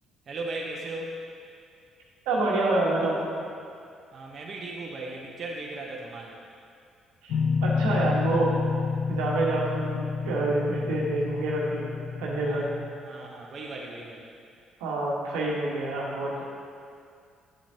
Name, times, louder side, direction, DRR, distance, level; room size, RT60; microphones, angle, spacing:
voice 1, 0.3-1.2 4.1-6.3 12.5-12.7 13.0-14.3, right 2 dB, 50° right, -2 dB, 0.9 m, -37 dB
voice 2, 2.2-3.3 7.2-8.5 9.1-11.8 12.2-12.6 14.8-16.4, right 2 dB, 85° right, -4 dB, 1.3 m, -27 dB
sound 1, 7.3-12.9, left 5 dB, 70° left, 0.7 m, -29 dB
8.9 x 7.3 x 2.8 m, 2.4 s
supercardioid pair, 60°, 0 cm